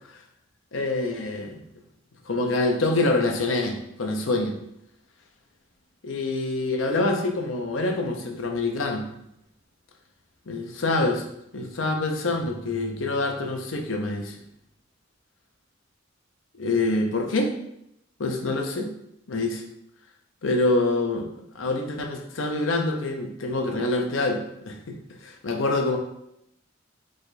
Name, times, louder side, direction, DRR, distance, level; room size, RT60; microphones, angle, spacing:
voice 1, 0.7-1.6 2.3-4.6 6.0-9.1 10.5-11.3 11.5-14.4 16.5-17.5 18.2-18.9 19.3-19.6 20.4-21.3 21.5-25.0 25.2-26.0, left 2 dB, 90° left, 2 dB, 0.7 m, -26 dB
4.9 x 2.3 x 4.0 m, 0.78 s
head